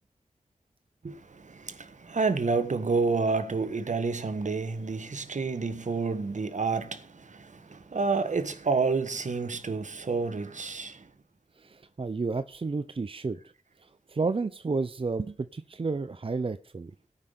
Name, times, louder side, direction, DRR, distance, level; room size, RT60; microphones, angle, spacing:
voice 1, 1.0-11.1, right 4 dB, 65° right, 1.4 m, -29 dB
voice 2, 11.6-13.4 13.8-16.9, right 4 dB, 40° right, 0.6 m, -31 dB
17.5 x 5.8 x 5.0 m
cardioid pair, 45°, 14 cm